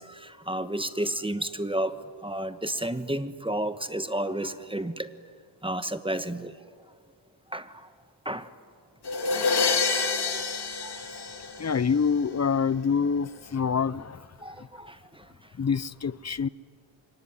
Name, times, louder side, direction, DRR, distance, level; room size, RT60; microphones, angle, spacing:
voice 1, 0.0-1.9 2.2-5.1 5.6-6.5 7.5-7.7 8.2-8.5 9.4-9.5 10.8-10.9 14.4-15.0, right 1 dB, 10° right, 1.3 m, -31 dB
sound 1, 9.1-12.0, left 4 dB, 55° left, 2.6 m, -27 dB
voice 2, 11.6-14.3 14.6-14.7 15.6-16.5, left 6 dB, 35° left, 0.7 m, -26 dB
25.5 x 23.5 x 9.9 m
wide cardioid pair, 85°, 47 cm